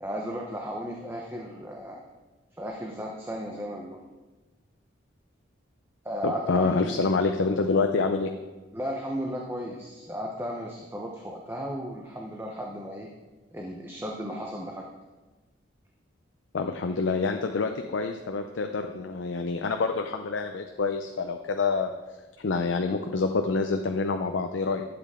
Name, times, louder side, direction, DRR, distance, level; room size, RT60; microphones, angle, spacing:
voice 1, 0.0-2.0 2.5-4.0 6.0-7.1 8.7-13.1 13.5-14.8, equal, 10° right, 0 dB, 0.8 m, -35 dB
voice 2, 6.2-8.3 16.5-21.9 22.4-24.9, left 4 dB, 85° left, 5 dB, 0.6 m, -27 dB
11.5 x 7.8 x 3.7 m, 1.2 s
head